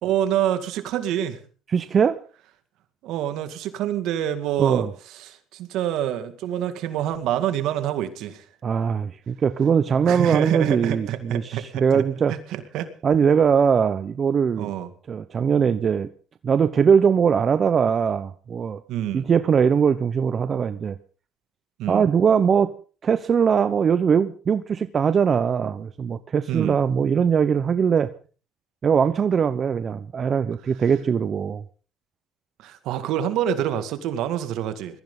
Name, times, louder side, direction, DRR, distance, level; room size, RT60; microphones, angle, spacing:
voice 1, 0.0-1.4 3.0-8.5 10.1-12.0 12.3-12.9 14.6-14.9 18.9-19.3 21.8-22.0 26.5-26.8 32.6-35.0, right 11 dB, 75° right, 10 dB, 2.2 m, -27 dB
voice 2, 1.7-2.2 4.6-4.9 8.6-12.3 13.0-14.7 15.1-16.1 16.4-18.8 19.1-21.0 21.9-22.7 23.0-28.1 28.8-31.6, right 7 dB, 40° right, 12 dB, 0.9 m, -21 dB
21.5 x 15.0 x 3.9 m, 0.39 s
supercardioid pair, 90°, 0 cm